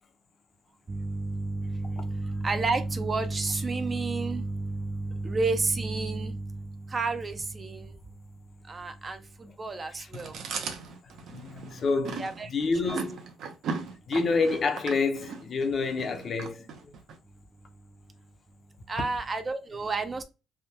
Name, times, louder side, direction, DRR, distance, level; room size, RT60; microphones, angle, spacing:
voice 1, 0.9-6.4 6.9-7.9 8.7-9.2 9.6-10.3 12.2-12.5 18.9-20.2, right 3 dB, 25° right, 0.4 m, -30 dB
Chewing mastication, 10.1-17.2, right 5 dB, 70° right, 0.7 m, -38 dB
voice 2, 11.3-13.2 14.1-16.7, left 4 dB, 40° left, 0.6 m, -28 dB
3.4 x 2.2 x 2.8 m
cardioid pair, 145°, 0 cm